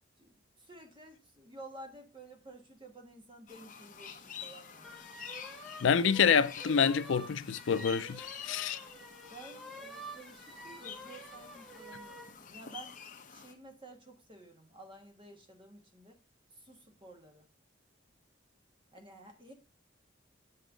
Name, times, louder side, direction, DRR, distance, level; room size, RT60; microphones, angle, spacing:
voice 1, 0.2-5.1 9.3-13.0 13.3-16.1 16.6-17.5 18.9-19.5, right 2 dB, 25° right, 1.5 m, -52 dB
sound 1, 3.5-13.5, left 7 dB, 40° left, 0.9 m, -48 dB
sound 2, 4.8-12.3, right 1 dB, ahead, 0.7 m, -49 dB
voice 2, 5.8-8.8, left 6 dB, 75° left, 0.4 m, -27 dB
8.3 x 4.8 x 5.0 m
head